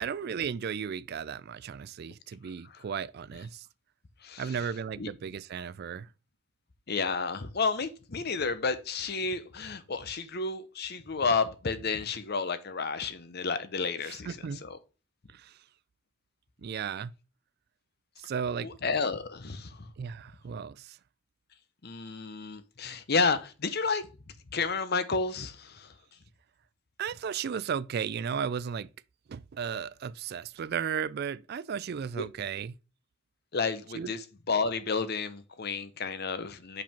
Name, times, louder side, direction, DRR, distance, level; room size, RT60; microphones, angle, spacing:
voice 1, 0.0-3.7 4.4-6.1 14.0-14.6 15.3-15.6 16.6-17.1 18.2-18.7 20.0-21.0 27.0-28.9 29.3-32.8 33.9-34.1, right 7 dB, 50° right, 0.3 m, -35 dB
voice 2, 6.9-14.3 14.6-14.8 18.6-19.9 21.8-24.1 24.5-25.9 32.2-32.3 33.5-34.2 34.5-36.8, left 4 dB, 50° left, 0.8 m, -31 dB
5.5 x 5.0 x 4.3 m
head